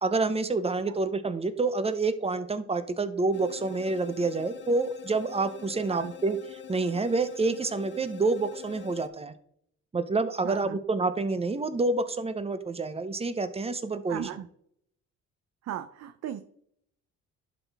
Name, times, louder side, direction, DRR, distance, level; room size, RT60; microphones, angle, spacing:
voice 1, 0.0-9.3 9.9-14.3, right 3 dB, 20° right, 11 dB, 0.7 m, -28 dB
sound 1, 3.3-9.1, left 10 dB, 40° left, 0.7 m, -45 dB
voice 2, 10.4-10.8 14.1-14.5 15.6-16.4, right 10 dB, 60° right, 9 dB, 0.6 m, -36 dB
11.5 x 3.9 x 3.5 m, 0.68 s
cardioid pair, 90°, 30 cm